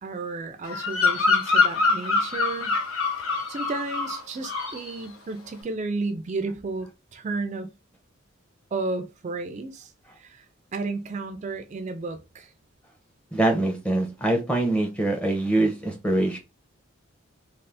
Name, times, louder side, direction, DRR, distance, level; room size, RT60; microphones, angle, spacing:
voice 1, 0.0-2.8 3.3-7.7 8.7-10.5 10.7-12.5, right 3 dB, 35° right, 0.3 m, -33 dB
Bird vocalization bird call bird song, 0.6-4.2 4.4-4.9, left 4 dB, 75° left, 0.8 m, -24 dB
voice 2, 13.3-16.4, right 2 dB, 5° left, 0.6 m, -24 dB
2.5 x 2.4 x 3.3 m
head